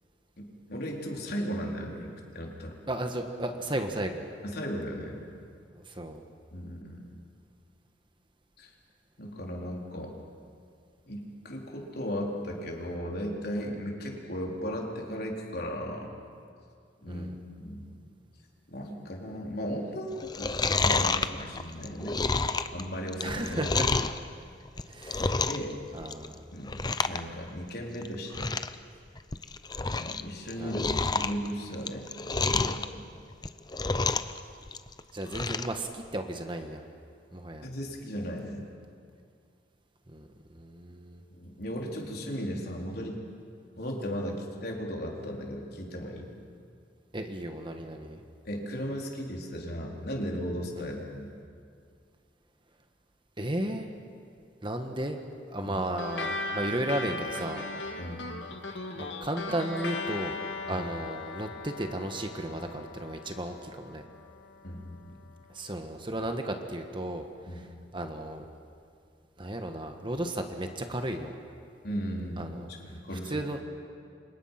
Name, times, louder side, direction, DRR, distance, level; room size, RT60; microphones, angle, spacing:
voice 1, 0.4-2.7 4.4-5.2 6.5-7.0 8.6-8.7 9.2-10.1 11.1-16.1 17.0-17.9 18.7-20.5 20.8-22.2 22.7-23.8 25.4-25.7 26.5-28.5 29.9-33.1 37.6-38.7 41.4-43.2 43.8-46.3 48.4-51.3 55.6-55.8 58.0-58.4 60.7-60.9 64.6-65.2 67.5-67.6 71.8-72.5 72.8-73.4, equal, 55° left, -1 dB, 4.3 m, -36 dB
voice 2, 2.9-4.2 5.9-6.2 17.0-17.3 23.2-23.9 24.9-25.4 25.9-26.4 30.6-30.9 35.1-36.8 37.3-37.7 40.1-41.2 47.1-48.2 50.7-50.8 53.4-53.9 54.6-55.2 55.5-57.6 59.0-60.4 60.7-64.0 65.5-67.2 67.9-68.4 69.4-71.3 72.4-72.7 73.3-73.6, right 1 dB, 25° right, 5 dB, 1.5 m, -34 dB
Chewing mastication, 20.2-24.2 24.7-25.7 26.0-26.3 26.7-27.2 27.5-27.6 28.0-28.1 28.3-28.8 29.2-30.2 30.5-32.9 33.3-34.4 34.7-35.7 36.1-36.2, left 3 dB, 20° left, 0.7 m, -29 dB
sound 1, 56.0-64.8, left 3 dB, 75° left, 2.1 m, -38 dB
29.5 x 26.5 x 6.0 m, 2.3 s
head